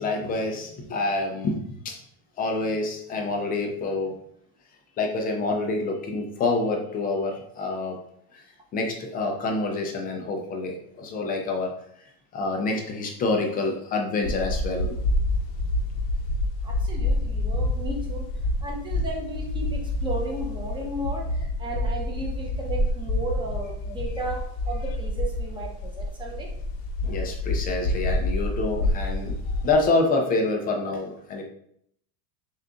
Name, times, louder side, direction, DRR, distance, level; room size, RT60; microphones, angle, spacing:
voice 1, 0.0-2.0 2.4-4.2 5.0-8.0 8.3-8.4 8.7-11.7 12.0-15.0 27.0-31.4, left 3 dB, 20° left, 2 dB, 0.3 m, -27 dB
sound 1, 14.2-29.9, left 1 dB, 60° left, 0.8 m, -28 dB
voice 2, 16.6-18.2 18.6-26.5, right 2 dB, 10° right, -1 dB, 0.8 m, -34 dB
6.5 x 2.4 x 2.4 m, 0.69 s
supercardioid pair, 125°, 50 cm